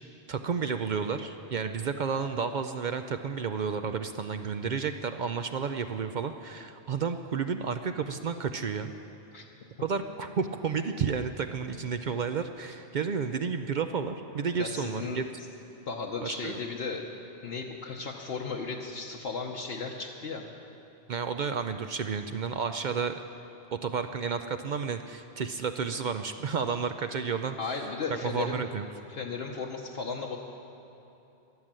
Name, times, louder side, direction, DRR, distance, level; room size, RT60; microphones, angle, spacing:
voice 1, 0.3-8.9 9.8-15.2 16.2-16.6 21.1-23.2 23.7-27.8 28.1-28.9, right 6 dB, 55° right, 8 dB, 0.5 m, -31 dB
voice 2, 14.6-15.3 15.9-17.0 17.4-20.4 27.6-28.6 29.1-30.4, left 4 dB, 65° left, 0 dB, 1.1 m, -35 dB
14.0 x 11.0 x 7.5 m, 3.0 s
omnidirectional pair, 1.2 m